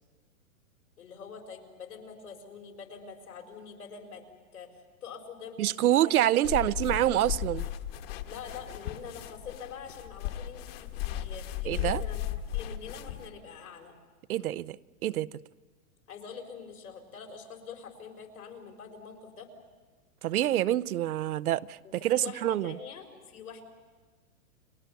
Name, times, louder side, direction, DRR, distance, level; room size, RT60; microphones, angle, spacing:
voice 1, 1.0-4.2 4.5-6.1 8.2-13.9 16.1-19.5 21.8-23.6, left 6 dB, 90° left, 4.7 m, -45 dB
voice 2, 5.6-7.7 11.6-12.0 14.3-14.8 15.0-15.4 20.2-22.8, right 13 dB, 80° right, 0.7 m, -26 dB
sound 1, 6.4-13.3, left 11 dB, 45° left, 1.3 m, -36 dB
30.0 x 21.0 x 7.0 m
hypercardioid pair, 160°, 43 cm